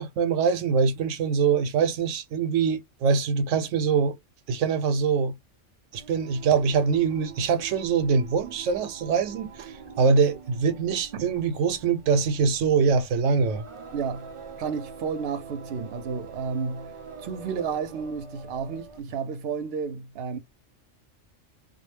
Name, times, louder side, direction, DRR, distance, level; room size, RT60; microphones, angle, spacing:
voice 1, 0.0-4.2 4.5-5.3 5.9-13.6, right 5 dB, 85° right, 0.9 m, -24 dB
Singing, 5.9-19.1, right 5 dB, 40° right, 0.4 m, -45 dB
voice 2, 13.9-14.3 14.6-16.9 17.2-20.4, right 6 dB, 60° right, 0.8 m, -32 dB
2.3 x 2.1 x 3.1 m
omnidirectional pair, 1.3 m